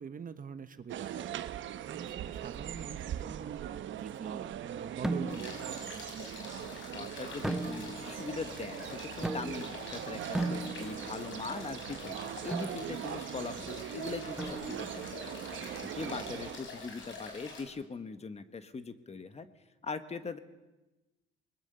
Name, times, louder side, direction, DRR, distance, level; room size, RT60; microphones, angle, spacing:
voice 1, 0.0-1.4 1.9-3.7 4.0-6.0, right 6 dB, 45° right, 11 dB, 1.3 m, -45 dB
sound 1, 0.9-16.6, right 11 dB, 75° right, 1.0 m, -41 dB
sound 2, 5.0-5.7 7.4-8.2 9.2-9.8 10.3-11.1 12.5-12.8 14.4-15.0, right 2 dB, ahead, 1.4 m, -36 dB
sound 3, 5.3-17.6, left 3 dB, 70° left, 5.5 m, -46 dB
voice 2, 6.9-12.2 12.4-15.1 15.9-19.5 19.8-20.4, left 4 dB, 35° left, 11 dB, 1.6 m, -41 dB
28.5 x 21.0 x 7.0 m, 1.1 s
cardioid pair, 90°, 20 cm